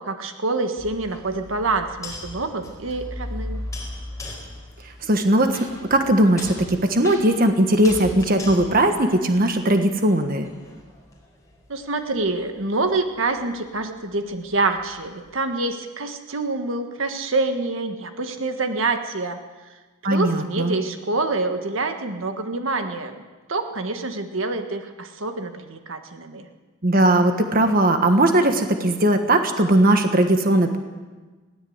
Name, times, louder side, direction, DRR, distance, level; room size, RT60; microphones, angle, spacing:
voice 1, 0.0-3.6 11.7-19.4 20.0-23.1 23.5-26.5, right 3 dB, 70° right, 6 dB, 1.5 m, -26 dB
sound 1, 0.8-10.0 10.4-15.3, left 1 dB, 15° left, 4.4 m, -38 dB
voice 2, 5.0-10.5 20.0-20.7 26.8-30.8, right 1 dB, 45° right, 6 dB, 1.5 m, -19 dB
20.5 x 17.0 x 8.0 m, 1.3 s
head